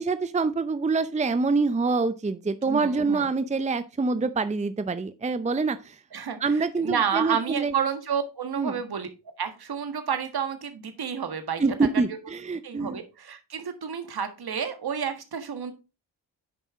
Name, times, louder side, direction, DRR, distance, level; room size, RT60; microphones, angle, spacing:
voice 1, 0.0-6.0 6.4-7.7 8.6-8.8 11.6-13.0, right 4 dB, 15° right, 13 dB, 0.6 m, -26 dB
voice 2, 2.7-3.2 6.1-6.4 6.8-9.1 9.4-11.6 12.6-15.7, right 7 dB, 60° right, 8 dB, 1.7 m, -30 dB
9.6 x 5.4 x 3.7 m, 0.29 s
cardioid pair, 50°, 42 cm